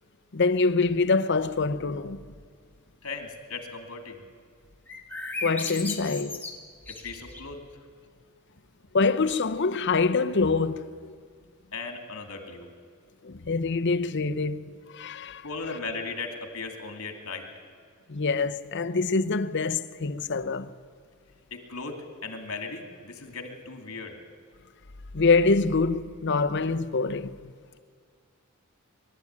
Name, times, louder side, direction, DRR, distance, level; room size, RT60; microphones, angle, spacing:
voice 1, 0.3-2.2 5.4-6.4 8.9-11.1 13.2-15.5 18.1-20.7 25.1-27.5, left 4 dB, 50° left, 0.7 m, -25 dB
voice 2, 3.0-4.2 7.0-7.6 11.7-12.7 15.4-17.4 21.5-24.2, left 4 dB, 65° left, 2.9 m, -37 dB
sound 1, 4.9-7.6, left 3 dB, 10° left, 2.0 m, -36 dB
23.0 x 12.5 x 9.7 m
head